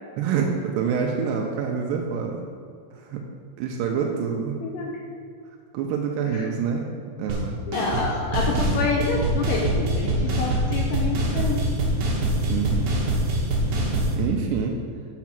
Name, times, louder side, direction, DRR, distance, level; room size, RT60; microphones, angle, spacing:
voice 1, 0.2-2.4 3.0-3.2 3.6-4.6 5.7-6.9 7.2-7.6 12.4-12.9 14.2-14.7, right 6 dB, 85° right, 1 dB, 2.8 m, -26 dB
voice 2, 4.6-5.0 6.3-6.5 7.7-11.8, left 4 dB, 80° left, -1 dB, 2.0 m, -28 dB
sound 1, 7.3-7.4 7.7-8.1 8.3-14.1, right 1 dB, 70° right, 3.0 m, -24 dB
7.2 x 6.0 x 5.9 m, 2.2 s
omnidirectional pair, 4.7 m